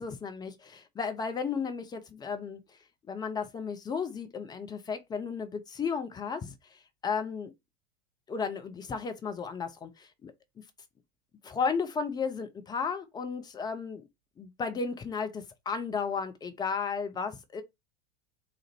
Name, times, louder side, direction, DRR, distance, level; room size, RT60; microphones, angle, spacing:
voice 1, 0.0-2.6 3.1-6.5 7.0-7.5 8.3-10.3 11.4-14.1 14.4-17.6, left 5 dB, 10° left, 0.4 m, -34 dB
4.0 x 2.5 x 4.4 m
figure-of-eight pair, 90°, 36 cm